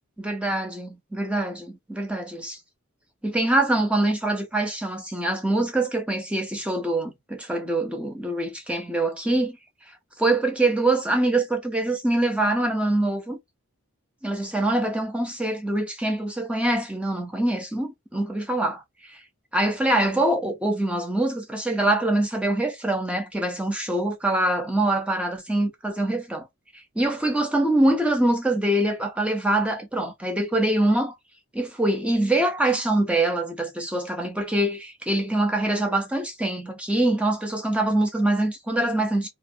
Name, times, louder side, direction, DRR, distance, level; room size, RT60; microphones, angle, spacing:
voice 1, 0.2-2.6 3.2-9.6 10.2-13.4 14.2-19.2 19.5-26.5 27.0-31.1 31.5-39.3, right 1 dB, 5° right, 0.4 m, -24 dB
2.4 x 2.1 x 2.5 m
head